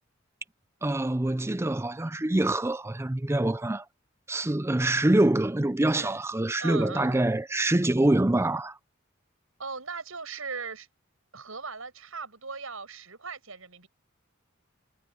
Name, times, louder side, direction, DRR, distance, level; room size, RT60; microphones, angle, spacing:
voice 1, 0.8-3.8 4.3-8.8, right 1 dB, 15° right, 0.5 m, -25 dB
voice 2, 6.6-7.2 9.6-10.9 11.3-13.9, right 4 dB, 90° right, 6.8 m, -38 dB
head